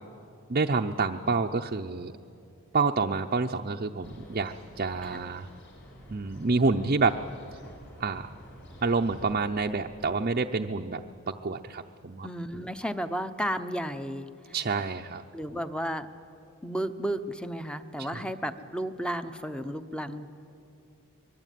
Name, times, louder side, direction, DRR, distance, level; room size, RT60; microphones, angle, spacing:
voice 1, 0.5-2.1 2.7-5.5 6.1-7.1 8.0-8.3 8.8-12.3 14.5-15.2 18.1-18.2, right 4 dB, 40° right, 2 dB, 0.7 m, -28 dB
sound 1, 4.0-9.5, equal, 55° left, 6.2 m, -49 dB
voice 2, 12.2-14.5 15.3-16.1 16.6-20.3, equal, 5° left, 10 dB, 0.9 m, -33 dB
25.0 x 21.5 x 9.3 m, 2.6 s
head